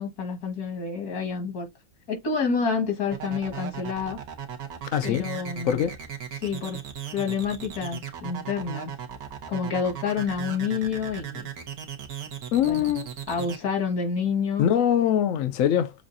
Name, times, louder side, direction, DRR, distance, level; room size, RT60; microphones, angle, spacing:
voice 1, 0.0-1.7 2.1-4.2 5.0-5.8 6.3-6.8 7.1-8.9 9.5-11.5 12.7-12.9 13.3-14.7, left 5 dB, 85° left, 2.2 m, -28 dB
sound 1, 3.1-13.6, right 9 dB, 75° right, 1.6 m, -36 dB
voice 2, 4.9-5.3 5.6-6.0 12.5-13.1 14.6-15.9, left 9 dB, 70° left, 0.9 m, -23 dB
7.1 x 2.5 x 2.6 m
omnidirectional pair, 1.5 m